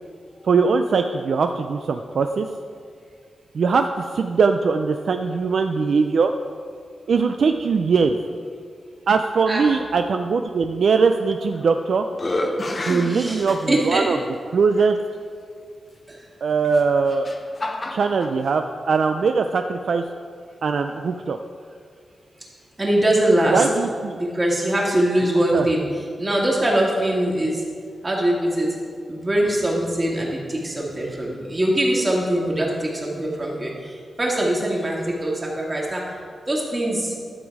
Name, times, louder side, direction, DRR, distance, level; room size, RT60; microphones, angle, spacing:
voice 1, 0.4-2.5 3.5-6.3 7.1-8.2 9.1-12.1 12.9-14.2 14.5-15.0 16.4-17.3 17.9-20.0 20.6-21.4 23.5-24.2 25.5-25.7, right 5 dB, 65° right, 6 dB, 0.4 m, -21 dB
sound 1, 11.3-11.8 12.1-14.0 14.8-14.9 16.6-18.3, left 1 dB, 25° left, 0.7 m, -29 dB
voice 2, 12.9-14.1 16.1-16.2 22.8-23.6 24.1-25.8 26.2-27.6 28.0-28.7 29.1-36.0 36.5-37.1, right 1 dB, 25° right, -3 dB, 2.1 m, -22 dB
12.0 x 7.3 x 4.7 m, 2.1 s
wide cardioid pair, 140°, 0 cm